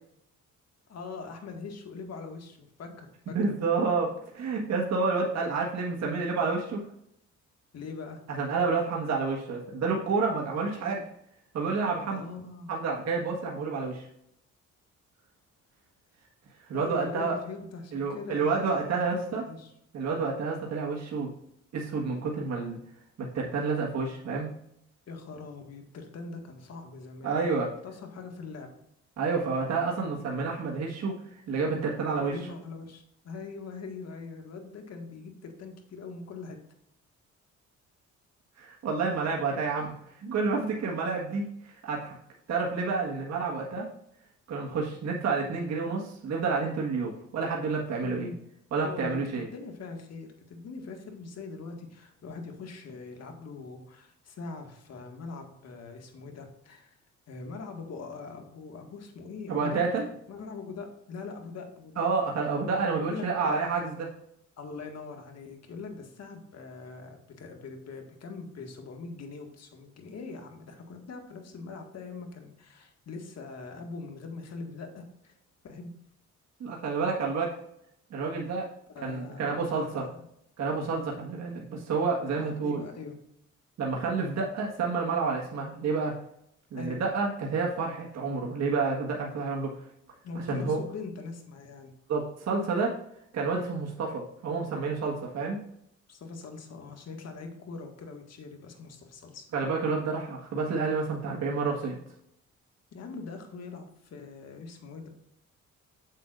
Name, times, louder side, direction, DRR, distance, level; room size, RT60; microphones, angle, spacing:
voice 1, 0.9-3.4 7.7-8.2 12.1-12.8 16.7-19.7 20.3-20.4 25.1-27.4 27.8-28.7 32.2-36.6 39.5-39.6 48.0-48.4 48.8-57.0 57.3-59.8 60.3-62.0 63.0-63.8 64.6-75.3 75.6-75.9 78.9-80.1 82.4-83.1 86.8-87.0 90.2-91.9 96.1-99.5 102.9-105.1, left 4 dB, 60° left, 3 dB, 1.9 m, -42 dB
voice 2, 3.3-6.8 8.4-11.0 11.5-12.2 12.7-14.1 16.7-17.4 17.9-19.4 19.9-21.3 21.7-22.8 23.2-24.5 27.2-27.7 29.2-31.2 31.5-32.4 38.6-39.9 40.1-42.2 42.5-43.9 44.5-48.3 48.7-49.5 59.5-60.1 62.0-64.1 76.6-77.5 78.1-78.7 79.0-80.1 80.6-82.8 83.8-86.1 86.7-89.7 90.5-90.8 92.1-93.0 93.3-95.6 99.5-102.0, right 4 dB, 60° right, -2 dB, 1.6 m, -29 dB
8.0 x 7.4 x 2.5 m, 0.75 s
cardioid pair, 90°, 30 cm